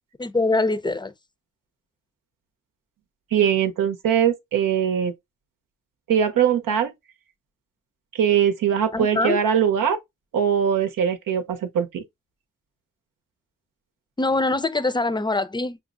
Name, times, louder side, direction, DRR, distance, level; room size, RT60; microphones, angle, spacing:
voice 1, 0.2-1.1 8.9-9.4 14.2-15.8, left 2 dB, 15° left, 0.6 m, -23 dB
voice 2, 3.3-5.1 6.1-6.9 8.1-10.0 10.3-12.0, right 8 dB, 85° right, 0.7 m, -21 dB
5.9 x 2.0 x 2.4 m
supercardioid pair, 45°, 32 cm